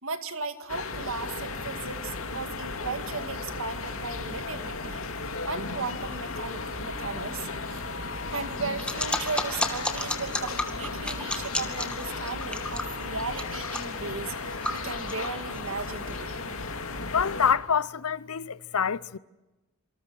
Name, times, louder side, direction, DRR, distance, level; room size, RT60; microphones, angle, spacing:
voice 1, 0.0-5.0 5.4-7.8 8.3-16.4, right 4 dB, 65° right, 2.1 m, -36 dB
sound 1, 0.7-17.5, left 3 dB, 65° left, 2.7 m, -35 dB
sound 2, 8.8-16.2, left 1 dB, 5° left, 2.3 m, -33 dB
voice 2, 17.1-19.2, left 7 dB, 85° left, 0.7 m, -26 dB
27.0 x 25.5 x 6.3 m
head